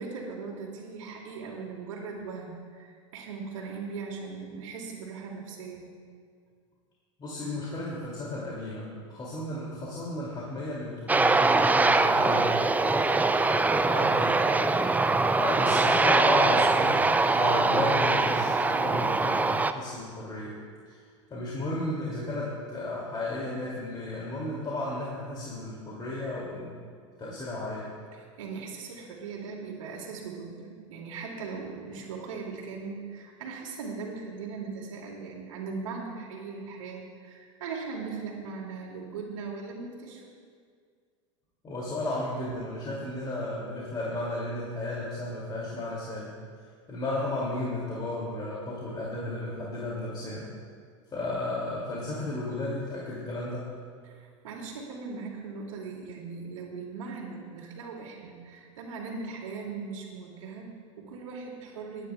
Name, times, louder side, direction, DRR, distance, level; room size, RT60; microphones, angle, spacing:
voice 1, 0.0-5.8 28.1-40.2 54.0-62.1, right 4 dB, 75° right, -2 dB, 2.6 m, -39 dB
voice 2, 7.2-13.2 13.8-14.4 15.3-20.6 20.9-21.0 21.3-26.7 27.2-27.9 41.6-46.3 46.9-50.5 51.1-53.8, left 2 dB, 25° left, -6 dB, 2.7 m, -34 dB
Aircraft, 11.1-19.7, right 3 dB, 10° right, 0.5 m, -23 dB
23.5 x 10.0 x 2.4 m, 2.1 s
hypercardioid pair, 90°, 17 cm